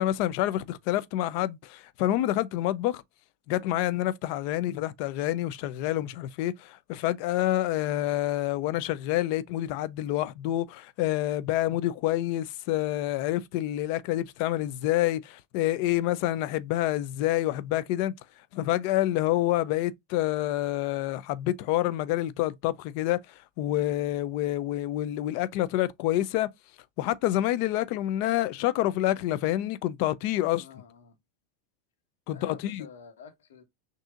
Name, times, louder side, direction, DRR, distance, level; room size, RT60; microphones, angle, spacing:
voice 1, 0.0-3.0 3.5-18.1 18.5-23.2 23.6-26.5 27.0-30.6 32.3-32.9, left 14 dB, 55° left, 0.5 m, -27 dB
voice 2, 30.5-31.1 32.3-33.6, left 6 dB, 85° left, 1.3 m, -49 dB
6.2 x 2.7 x 2.4 m
hypercardioid pair, 120°, 0 cm